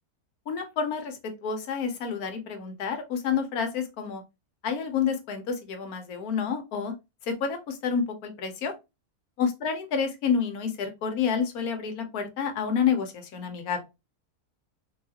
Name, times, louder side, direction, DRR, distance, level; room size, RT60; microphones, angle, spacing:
voice 1, 0.5-4.2 4.6-6.9 7.3-8.7 9.4-13.8, left 6 dB, 75° left, 1.2 m, -29 dB
3.6 x 2.3 x 2.7 m
omnidirectional pair, 1.6 m